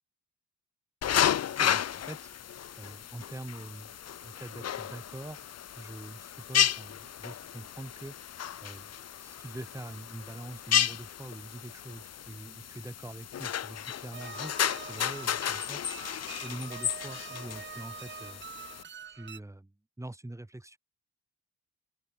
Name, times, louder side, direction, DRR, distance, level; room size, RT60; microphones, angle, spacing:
sound 1, 1.0-18.8, left 10 dB, 55° left, 1.7 m, -33 dB
voice 1, 1.5-2.2 2.8-4.0 4.2-5.4 5.8-8.1 8.6-14.5 14.8-15.8 16.4-18.4 19.1-19.7 20.0-20.8, right 1 dB, 10° right, 5.2 m, -44 dB
sound 2, 14.1-19.4, right 8 dB, 40° right, 0.9 m, -45 dB
open air
cardioid pair, 90°, 30 cm